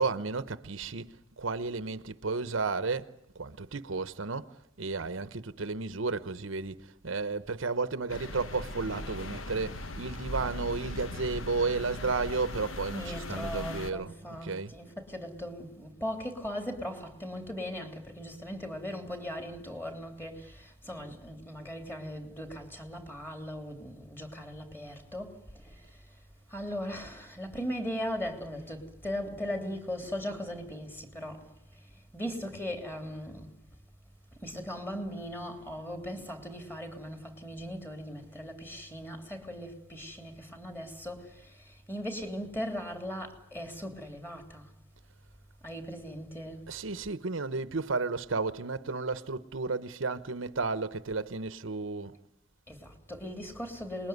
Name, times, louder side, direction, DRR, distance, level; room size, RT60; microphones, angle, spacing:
voice 1, 0.0-3.1 3.3-14.7 46.7-52.2, right 4 dB, 75° right, 1.0 m, -33 dB
sound 1, 8.1-13.9, left 1 dB, 90° left, 1.5 m, -39 dB
voice 2, 12.9-26.2 26.5-33.5 34.4-44.7 45.6-46.7 52.7-54.1, equal, 10° left, 3.2 m, -39 dB
27.5 x 20.5 x 9.5 m
head